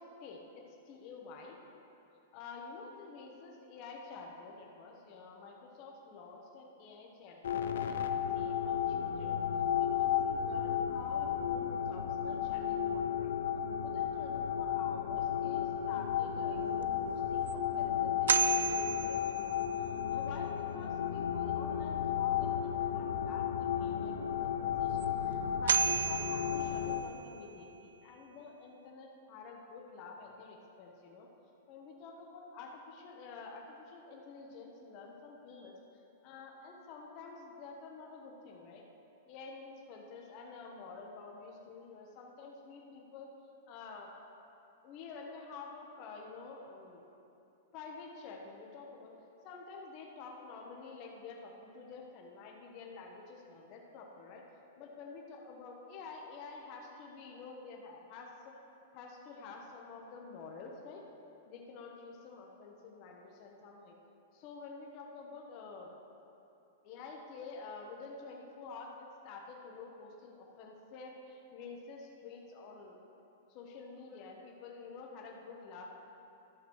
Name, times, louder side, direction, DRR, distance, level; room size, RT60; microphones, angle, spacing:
voice 1, 0.0-1.6 2.3-8.0 8.3-9.4 9.8-13.4 13.8-19.5 20.1-31.3 31.7-35.8 36.2-38.8 39.3-43.3 43.7-44.1 44.8-47.0 47.7-49.1 49.4-54.5 54.8-58.6 58.9-61.0 61.5-64.0 64.3-65.9 66.8-73.0 73.5-75.9, left 4 dB, 40° left, -1 dB, 1.1 m, -49 dB
sound 1, 7.4-27.0, left 9 dB, 80° left, 0.6 m, -33 dB
sound 2, 16.8-16.9 17.5-17.6 18.3-19.9 25.0-25.1 25.7-27.3, right 8 dB, 90° right, 0.3 m, -32 dB
12.5 x 6.1 x 4.6 m, 2.8 s
supercardioid pair, 150°, 0 cm